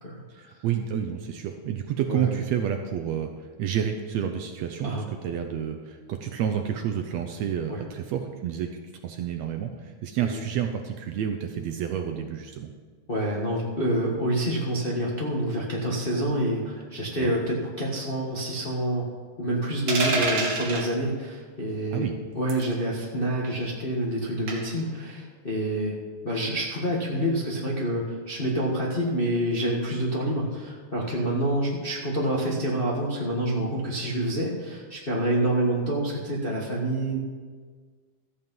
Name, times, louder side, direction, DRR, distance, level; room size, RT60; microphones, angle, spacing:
voice 1, 0.3-8.7 9.0-12.7 17.2-17.3 21.9-22.1, right 9 dB, 70° right, 5 dB, 1.7 m, -29 dB
voice 2, 13.1-19.1 19.4-22.0 22.3-26.0 26.2-37.2, right 1 dB, 35° left, -3 dB, 0.9 m, -27 dB
sound 1, 19.9-20.9 22.5-22.7 24.5-24.8, right 2 dB, 45° right, 2.0 m, -26 dB
13.5 x 8.4 x 5.4 m, 1.5 s
omnidirectional pair, 3.6 m